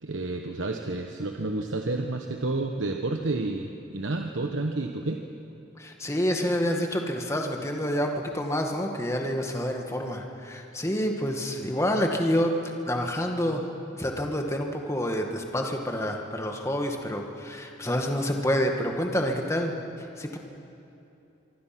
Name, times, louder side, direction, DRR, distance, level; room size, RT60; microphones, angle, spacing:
voice 1, 0.0-5.2, right 2 dB, 80° right, 3 dB, 1.2 m, -30 dB
voice 2, 5.8-12.6 12.9-13.6 13.9-20.4, equal, 15° left, 2 dB, 1.8 m, -28 dB
25.0 x 24.5 x 6.0 m, 2.8 s
head